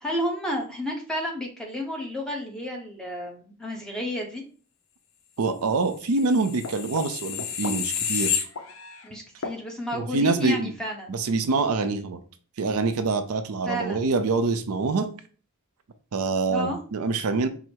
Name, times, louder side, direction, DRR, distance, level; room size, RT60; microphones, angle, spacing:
voice 1, 0.0-4.4 9.0-11.1 13.7-14.0 16.5-16.8, equal, 5° left, 0.8 m, -31 dB
voice 2, 5.4-8.4 9.9-10.7 11.1-12.2 12.6-15.1 16.1-17.5, right 3 dB, 75° right, 0.5 m, -25 dB
sound 1, 6.1-9.0 9.4-9.6, left 8 dB, 65° left, 0.6 m, -30 dB
4.8 x 2.0 x 4.4 m
head